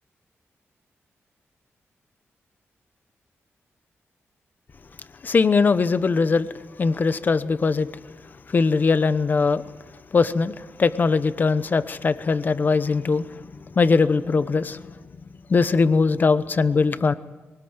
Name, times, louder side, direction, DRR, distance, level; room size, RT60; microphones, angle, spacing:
voice 1, 5.2-6.5 6.8-7.9 8.5-9.6 10.1-13.3 13.8-14.9 15.5-17.1, left 4 dB, 40° left, 0.9 m, -20 dB
24.0 x 19.0 x 8.0 m
wide cardioid pair, 140°, 5 cm